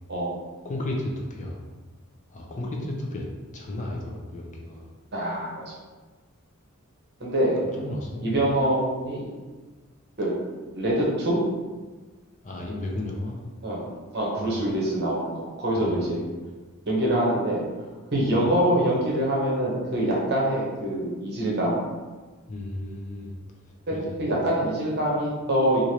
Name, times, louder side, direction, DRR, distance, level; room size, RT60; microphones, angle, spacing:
voice 1, 0.6-1.6 2.3-3.3 3.5-4.9 7.8-8.3 12.4-13.4 14.4-14.6 15.7-16.1 18.3-18.4 22.5-23.3 23.9-24.2, left 1 dB, 35° left, -1 dB, 0.4 m, -33 dB
voice 2, 5.1-5.6 7.2-7.6 8.2-9.3 10.2-10.3 10.7-11.4 13.6-13.8 14.1-16.2 16.9-17.6 18.1-21.8 23.9-25.8, right 1 dB, 50° right, -4 dB, 0.9 m, -25 dB
3.0 x 2.5 x 2.8 m, 1.3 s
head